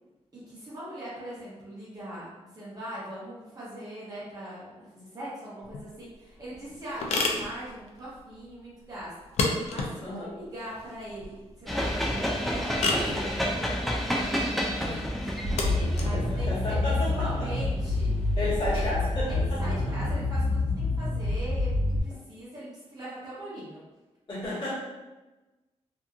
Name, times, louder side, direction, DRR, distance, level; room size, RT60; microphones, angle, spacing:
voice 1, 0.3-14.5 14.8-15.5 16.0-18.9 19.3-21.7 22.0-23.8, right 1 dB, 35° right, -9 dB, 0.8 m, -41 dB
sound 1, 5.6-18.0, left 3 dB, 70° left, 0.4 m, -34 dB
sound 2, 11.7-18.0, equal, ahead, 0.3 m, -30 dB
sound 3, 15.4-22.0, left 2 dB, 75° right, 1.0 m, -27 dB
voice 2, 16.0-17.5 18.3-19.8 24.3-24.7, left 1 dB, 45° left, -9 dB, 1.3 m, -32 dB
2.8 x 2.4 x 2.3 m, 1.1 s
wide cardioid pair, 150°, 11 cm